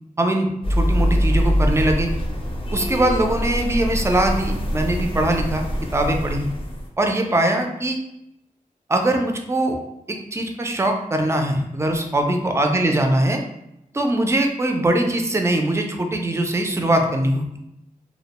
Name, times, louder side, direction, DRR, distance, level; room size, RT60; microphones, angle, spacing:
voice 1, 0.2-2.1 2.7-6.5 7.0-8.0 8.9-9.8 10.1-13.4 13.9-17.5, right 1 dB, 20° right, 3 dB, 0.4 m, -21 dB
sound 1, 0.6-6.9, equal, 35° left, 0.5 m, -23 dB
2.3 x 2.1 x 2.9 m, 0.84 s
wide cardioid pair, 70°, 15 cm